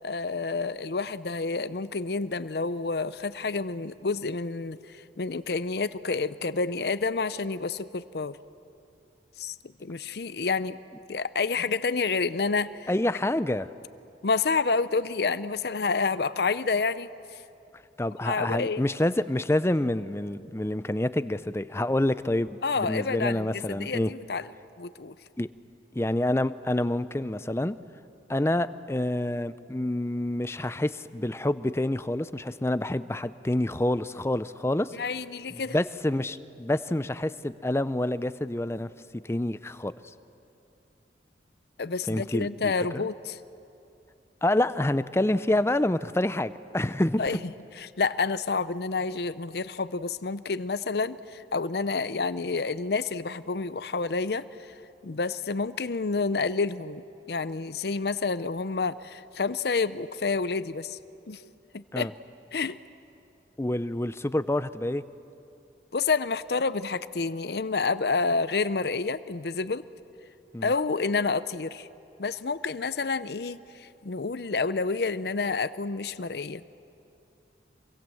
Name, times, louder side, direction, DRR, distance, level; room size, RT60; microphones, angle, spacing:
voice 1, 0.0-8.4 9.4-10.8 11.1-12.9 14.2-17.1 18.2-18.8 22.6-24.5 24.8-25.1 34.9-35.8 41.8-43.4 47.2-47.4 47.7-54.4 55.0-57.0 57.3-61.0 61.3-61.4 61.7-62.1 62.5-62.8 65.9-69.8 70.6-71.9 72.2-76.6, left 4 dB, 60° left, 14 dB, 0.6 m, -29 dB
voice 2, 12.9-13.7 18.0-24.1 25.4-25.5 25.9-27.8 28.3-34.9 35.5-38.9 39.2-39.9 42.1-43.1 44.4-47.2 61.9-62.1 63.6-65.0 70.5-70.7, left 1 dB, 15° left, 14 dB, 0.5 m, -27 dB
25.5 x 23.5 x 7.7 m, 2.7 s
head